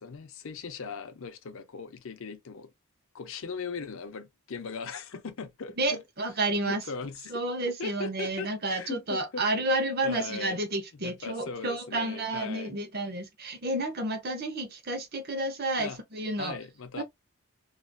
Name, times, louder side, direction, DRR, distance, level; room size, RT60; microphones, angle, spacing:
voice 1, 0.0-2.7 3.1-6.0 6.6-7.3 7.6-9.4 10.0-10.6 11.0-12.7 15.8-16.0 16.4-17.0, left 5 dB, 65° left, 0.5 m, -39 dB
voice 2, 5.8-6.8 7.3-16.6 17.0-17.1, right 2 dB, 45° right, 0.8 m, -31 dB
3.0 x 2.6 x 2.2 m
head